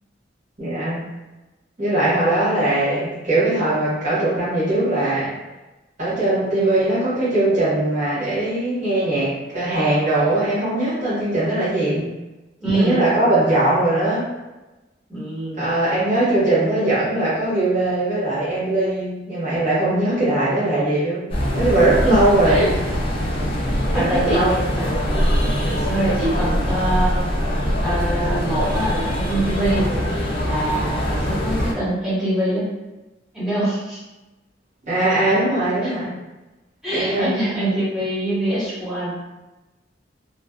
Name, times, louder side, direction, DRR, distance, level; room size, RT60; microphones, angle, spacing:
voice 1, 0.6-1.0 1.8-5.3 6.0-12.1 12.7-14.3 15.6-21.3 21.5-22.8 23.9-24.7 34.8-36.1 36.9-37.4, right 2 dB, 45° right, -10 dB, 1.1 m, -20 dB
voice 2, 12.6-13.0 15.1-15.6 22.0-22.7 23.9-24.4 24.7-24.9 25.7-27.2 27.8-29.9 30.4-32.7 33.3-34.0 35.8-35.9 36.8-39.2, right 1 dB, 5° right, -11 dB, 1.1 m, -24 dB
sound 1, 21.3-31.7, equal, 30° left, 0.5 m, -23 dB
2.4 x 2.3 x 2.2 m, 1.1 s
head